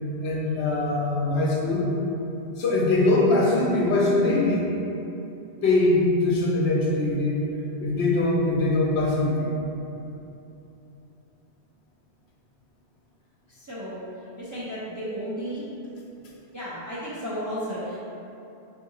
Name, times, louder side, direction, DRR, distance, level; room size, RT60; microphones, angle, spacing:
voice 1, 0.2-1.9 2.6-4.7 5.6-7.4 7.8-9.5, left 2 dB, 80° left, -3 dB, 0.9 m, -22 dB
voice 2, 13.5-14.0 14.4-15.7 16.5-18.0, equal, 25° right, -9 dB, 0.4 m, -33 dB
4.7 x 2.6 x 2.7 m, 2.8 s
omnidirectional pair, 1.1 m